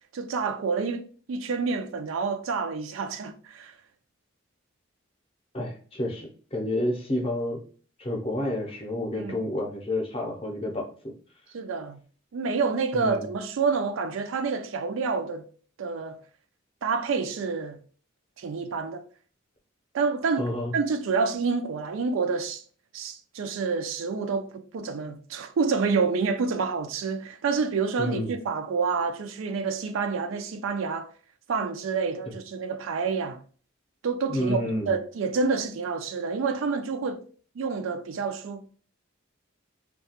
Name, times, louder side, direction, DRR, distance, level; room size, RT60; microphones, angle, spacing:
voice 1, 0.1-3.7 9.1-9.5 11.5-12.0 12.3-15.4 15.8-16.2 16.8-17.8 18.4-19.0 19.9-22.6 22.9-24.5 24.7-31.1 31.5-33.4 34.0-37.2 37.6-38.7, right 4 dB, 75° right, 0.4 m, -28 dB
voice 2, 5.5-7.6 8.0-10.9 12.9-13.3 20.4-20.7 28.0-28.3 34.3-34.9, left 1 dB, 30° left, 0.6 m, -29 dB
2.7 x 2.3 x 2.8 m
head